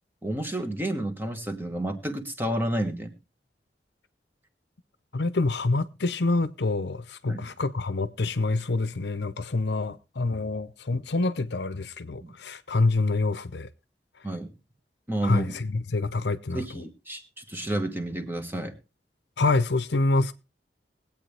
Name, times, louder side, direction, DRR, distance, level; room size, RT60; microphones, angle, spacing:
voice 1, 0.2-3.1 7.3-7.5 12.2-12.3 14.2-14.5 15.1-15.6 16.5-18.8, right 1 dB, 10° right, 1.4 m, -30 dB
voice 2, 5.1-13.7 15.2-16.8 19.4-20.3, left 3 dB, 75° left, 0.8 m, -26 dB
20.5 x 8.5 x 3.4 m
head